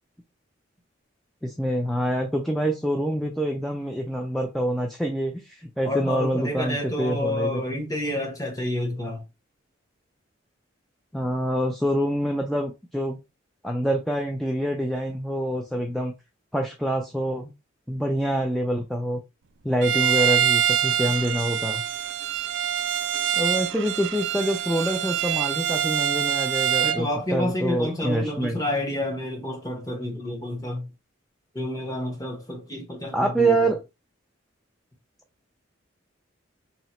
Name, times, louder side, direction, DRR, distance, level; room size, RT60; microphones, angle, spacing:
voice 1, 1.4-7.6 11.1-13.2 13.6-16.1 16.5-17.5 17.9-19.2 19.6-21.8 23.3-28.6 33.1-33.8, right 1 dB, ahead, 0.4 m, -26 dB
voice 2, 5.8-9.2 26.8-30.9 31.5-33.7, left 1 dB, 20° left, 1.1 m, -29 dB
Bowed string instrument, 19.8-27.1, right 9 dB, 65° right, 0.4 m, -25 dB
3.0 x 2.8 x 4.2 m
head